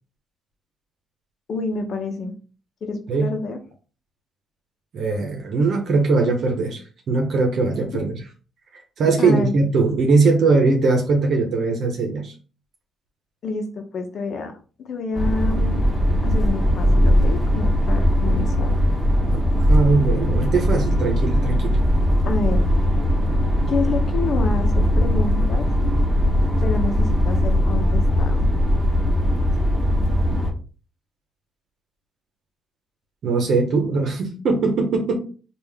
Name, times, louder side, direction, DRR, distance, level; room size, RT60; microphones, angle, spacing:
voice 1, 1.5-2.3 2.8-3.6 9.2-9.5 13.4-14.5 14.8-15.9 16.2-18.7 22.3-22.6 23.7-25.7 26.6-28.5, left 4 dB, 60° left, 6 dB, 0.8 m, -28 dB
voice 2, 4.9-6.8 7.1-8.2 9.0-12.3 19.3-19.4 19.7-21.8 33.2-35.1, right 3 dB, 65° right, 2 dB, 0.9 m, -20 dB
sound 1, 15.1-30.5, equal, 15° right, 1.6 m, -19 dB
3.5 x 2.5 x 3.4 m, 0.37 s
cardioid pair, 90°, 0 cm